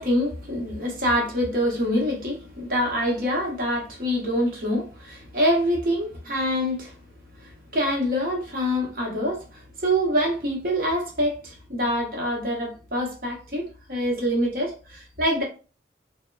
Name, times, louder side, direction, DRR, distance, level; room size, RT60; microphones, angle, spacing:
voice 1, 0.0-6.9 7.3-15.4, equal, 50° right, 1.0 m, -25 dB
3.4 x 2.1 x 2.3 m
head